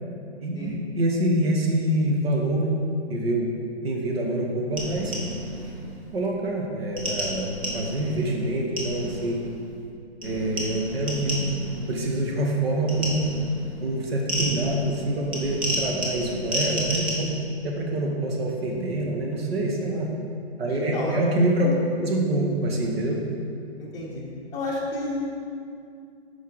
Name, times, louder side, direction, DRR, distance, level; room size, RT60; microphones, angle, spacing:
voice 1, 0.4-2.7 3.1-3.5 3.8-5.1 6.1-9.4 10.2-11.4 11.7-13.3 13.8-17.3 17.6-20.1 20.6-21.7 22.0-23.2, right 1 dB, 65° right, 0 dB, 1.2 m, -26 dB
sound 1, 4.8-6.2 7.0-9.8 10.2-12.4 12.9-17.1, equal, 10° right, 0.3 m, -32 dB
voice 2, 20.7-21.2 21.6-21.8 23.8-24.2 24.5-25.3, left 2 dB, 10° left, -5 dB, 0.8 m, -31 dB
5.8 x 4.6 x 4.6 m, 2.4 s
hypercardioid pair, 140°, 33 cm